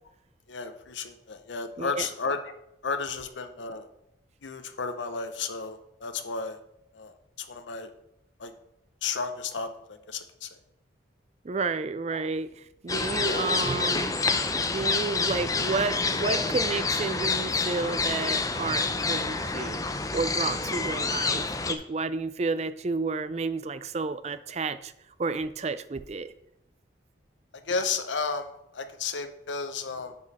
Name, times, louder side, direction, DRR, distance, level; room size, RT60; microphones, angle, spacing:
voice 1, 0.5-2.5 2.8-3.9 4.4-6.6 6.9-7.9 8.4-8.5 9.0-10.5 13.3-13.5 16.2-16.4 27.7-30.1, left 4 dB, 85° left, 8 dB, 0.8 m, -33 dB
voice 2, 1.8-2.1 11.4-14.1 14.7-19.8 20.1-24.9 25.2-26.3, right 4 dB, 35° right, 13 dB, 0.4 m, -31 dB
sound 1, 12.9-21.7, left 3 dB, 20° left, 0.6 m, -28 dB
9.6 x 5.2 x 4.2 m, 0.80 s
head